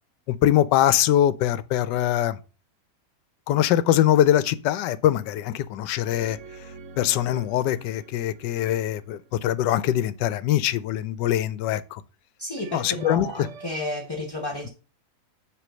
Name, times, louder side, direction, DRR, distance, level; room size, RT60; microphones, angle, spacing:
voice 1, 0.3-2.4 3.5-6.4 7.0-12.0 12.7-13.3, left 12 dB, 75° left, 1.2 m, -22 dB
sound 1, 6.2-10.2 12.6-13.7, right 5 dB, 65° right, 0.8 m, -46 dB
voice 2, 12.4-14.7, left 1 dB, 20° left, 0.7 m, -32 dB
7.7 x 3.3 x 6.2 m
omnidirectional pair, 2.0 m